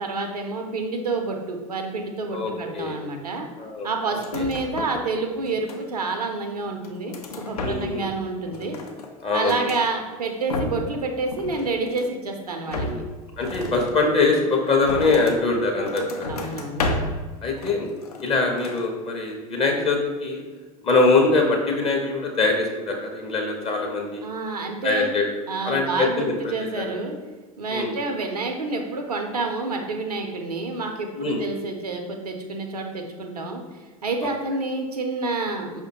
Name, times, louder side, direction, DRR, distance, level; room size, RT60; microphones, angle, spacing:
voice 1, 0.0-3.5 3.8-8.8 9.3-12.9 16.3-16.9 24.2-25.1 25.5-27.2 27.6-35.8, right 3 dB, 80° right, 4 dB, 0.5 m, -28 dB
voice 2, 2.3-3.0 3.6-3.9 7.6-8.1 9.2-9.6 12.7-13.0 13.4-16.3 17.4-17.9 18.2-20.4 20.8-24.3 24.8-25.2 25.6-26.9 27.7-27.9 31.1-31.4, left 3 dB, 30° left, 1 dB, 0.6 m, -23 dB
sound 1, 4.1-5.1 5.4-6.1 6.6-8.1 8.4-9.9 10.3-11.0 11.3-12.2 12.7-15.5 15.8-17.3 17.6-18.3 18.6-18.9, left 2 dB, 80° left, 0.4 m, -33 dB
4.9 x 2.1 x 2.7 m, 1.3 s
figure-of-eight pair, 75°, 19 cm